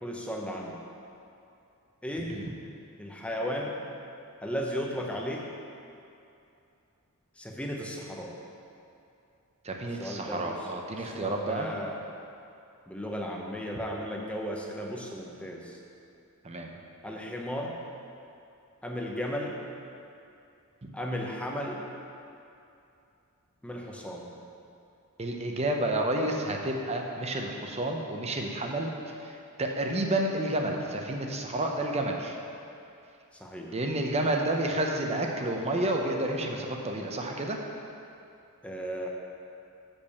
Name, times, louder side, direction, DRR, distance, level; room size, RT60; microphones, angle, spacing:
voice 1, 0.0-0.8 2.0-2.3 3.0-3.8 4.4-5.5 7.4-8.3 9.9-10.7 11.0-12.0 12.9-15.8 17.0-17.8 18.8-19.6 20.9-21.8 23.6-24.3 33.4-33.8 38.6-39.1, equal, 5° left, -1 dB, 0.8 m, -35 dB
voice 2, 9.6-11.7 16.4-16.7 20.8-20.9 25.2-28.9 29.2-32.3 33.7-37.6, right 1 dB, 30° right, 2 dB, 0.7 m, -30 dB
6.8 x 5.3 x 7.0 m, 2.7 s
head